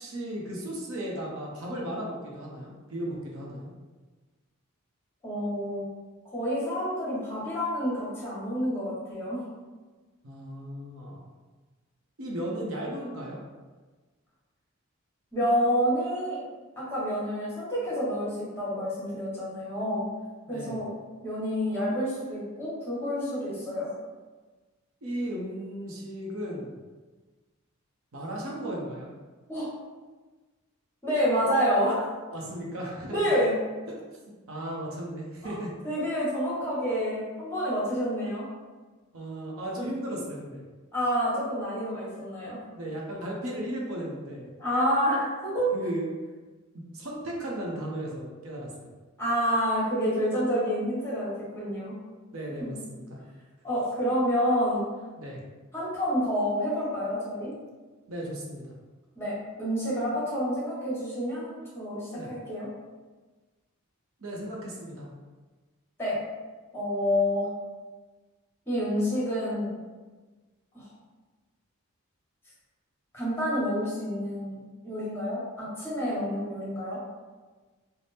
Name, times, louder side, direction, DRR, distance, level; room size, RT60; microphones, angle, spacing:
voice 1, 0.0-3.7 10.2-11.3 12.2-13.4 20.5-20.8 25.0-26.7 28.1-29.1 32.3-33.2 34.5-35.7 39.1-40.6 42.7-44.5 45.7-46.1 46.7-48.9 52.3-53.2 55.2-55.4 58.1-58.7 62.1-62.3 64.2-65.1, right 1 dB, 65° right, -3 dB, 0.7 m, -35 dB
voice 2, 5.2-5.9 6.3-9.4 15.3-16.4 16.8-20.1 20.5-20.9 21.2-23.9 29.5-29.7 31.0-32.0 33.1-33.5 35.4-35.6 35.8-38.4 40.9-42.6 44.6-45.7 49.2-51.9 52.6-52.7 53.6-54.8 55.7-57.5 59.1-62.7 66.0-66.2 66.7-67.5 68.7-69.7 70.7-70.9 73.1-77.0, equal, 10° left, -8 dB, 1.3 m, -28 dB
3.4 x 2.0 x 4.1 m, 1.3 s
head